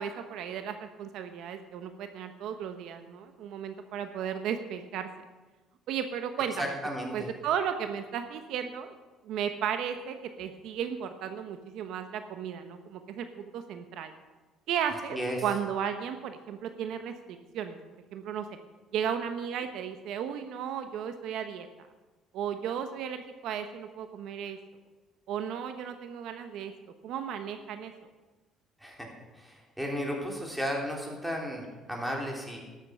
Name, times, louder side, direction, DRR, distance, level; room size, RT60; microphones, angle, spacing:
voice 1, 0.0-5.1 5.9-6.7 7.1-8.9 9.2-14.1 14.7-17.8 18.1-18.5 18.9-21.7 22.3-24.6 25.3-26.7 27.0-27.9, right 8 dB, 70° right, 8 dB, 0.9 m, -34 dB
voice 2, 6.6-7.3 15.1-15.4 28.8-29.1 29.4-32.6, equal, 5° right, -1 dB, 3.2 m, -34 dB
12.5 x 8.2 x 6.8 m, 1.2 s
cardioid pair, 110°, 0 cm